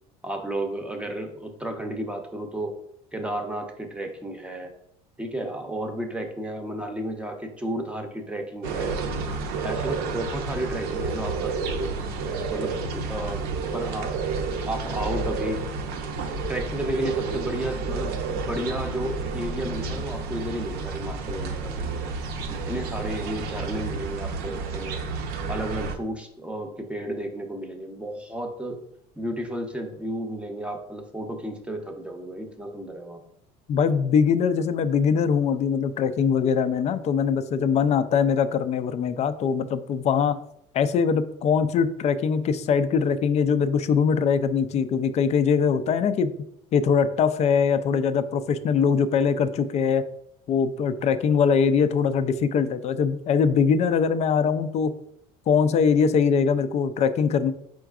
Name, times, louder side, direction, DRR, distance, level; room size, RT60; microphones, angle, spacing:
voice 1, 0.2-2.7 3.1-4.7 5.2-9.0 9.6-11.9 12.5-13.4 13.7-14.2 14.7-15.6 16.5-22.1 22.5-25.1 25.5-28.8 29.2-33.2, right 1 dB, 5° right, 3 dB, 0.7 m, -32 dB
sound 1, 8.6-26.0, right 4 dB, 60° right, 0.7 m, -30 dB
voice 2, 33.7-40.4 40.7-46.3 46.7-50.0 50.5-54.9 55.5-57.5, left 6 dB, 40° left, 12 dB, 0.4 m, -22 dB
4.7 x 4.4 x 2.4 m, 0.74 s
supercardioid pair, 105°, 18 cm